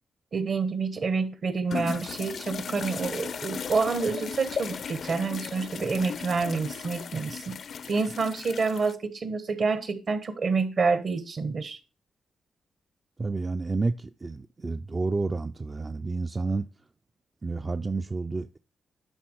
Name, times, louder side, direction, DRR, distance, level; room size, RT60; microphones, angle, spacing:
voice 1, 0.3-7.6 7.9-11.8, right 4 dB, 50° right, 1.1 m, -28 dB
sound 1, 1.7-8.9, left 6 dB, 60° left, 0.5 m, -36 dB
voice 2, 13.2-16.7 17.4-18.6, right 3 dB, 30° right, 0.4 m, -30 dB
10.5 x 3.6 x 4.6 m
cardioid pair, 80°, 0 cm